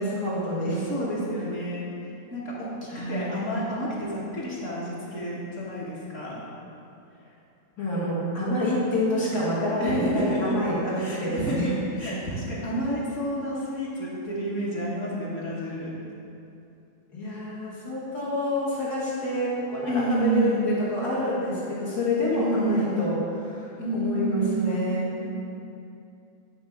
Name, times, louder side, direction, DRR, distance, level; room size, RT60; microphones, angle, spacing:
voice 1, 0.0-0.9 2.9-3.4 7.8-11.7 17.1-25.1, left 1 dB, 70° left, -8 dB, 2.1 m, -27 dB
voice 2, 0.9-1.9 2.3-6.4 9.8-10.6 11.0-16.0 19.9-20.6 22.3-23.0 23.8-24.7 25.2-25.3, right 1 dB, 50° left, -7 dB, 1.6 m, -29 dB
9.0 x 3.5 x 5.8 m, 2.6 s
omnidirectional pair, 1.8 m